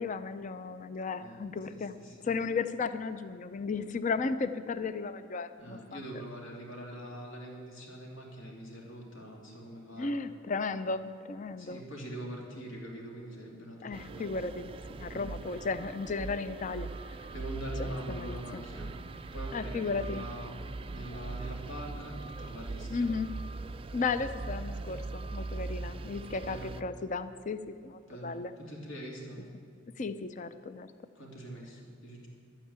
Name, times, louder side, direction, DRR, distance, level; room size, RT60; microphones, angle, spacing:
voice 1, 0.0-2.0 2.2-6.0 10.0-11.8 13.8-17.3 17.8-18.6 19.5-20.2 22.9-23.3 23.9-28.5 30.0-30.9, left 4 dB, 40° left, 12 dB, 0.5 m, -35 dB
voice 2, 1.7-2.3 5.6-10.1 11.6-14.3 15.1-15.3 17.3-19.0 19.3-20.5 20.9-23.1 26.4-26.8 28.1-29.5 31.1-32.3, right 1 dB, 75° left, -1 dB, 2.9 m, -43 dB
sound 1, 13.9-26.8, right 3 dB, 25° right, 0.3 m, -40 dB
12.0 x 9.1 x 8.8 m, 2.4 s
head